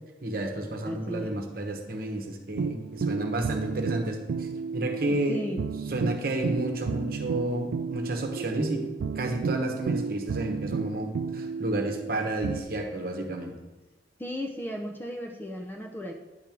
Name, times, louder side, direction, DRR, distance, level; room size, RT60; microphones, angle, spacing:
voice 1, 0.2-5.4 5.9-8.9 9.2-13.5, right 1 dB, 55° right, 3 dB, 1.0 m, -31 dB
voice 2, 0.8-1.4 5.1-5.7 14.2-16.1, equal, 10° left, 2 dB, 0.5 m, -35 dB
sound 1, 2.6-12.6, right 5 dB, 80° right, 0.3 m, -32 dB
9.8 x 3.5 x 6.0 m, 1.1 s
head